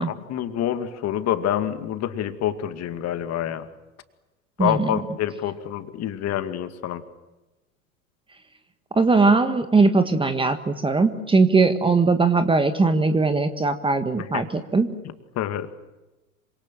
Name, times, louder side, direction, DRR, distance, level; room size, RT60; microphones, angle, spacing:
voice 1, 0.0-3.6 4.6-7.0 15.4-15.7, left 11 dB, 35° left, 9 dB, 2.3 m, -27 dB
voice 2, 4.6-5.0 8.9-14.9, right 3 dB, 10° right, 9 dB, 1.6 m, -20 dB
27.5 x 25.5 x 7.5 m, 1.1 s
hypercardioid pair, 90°, 43 cm